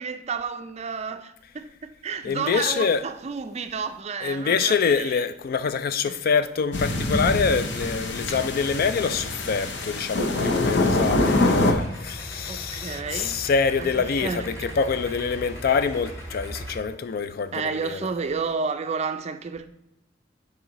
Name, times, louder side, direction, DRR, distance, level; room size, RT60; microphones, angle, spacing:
voice 1, 0.0-5.2 6.1-6.2 12.5-13.4 13.8-14.7 17.5-19.7, right 5 dB, 35° right, 0.4 m, -31 dB
voice 2, 2.2-3.0 4.2-18.0, left 5 dB, 50° left, 0.4 m, -25 dB
sound 1, 6.7-11.7, left 2 dB, 70° left, 0.8 m, -24 dB
Idling, 11.7-16.8, equal, 15° left, 2.4 m, -38 dB
7.2 x 4.9 x 3.0 m
head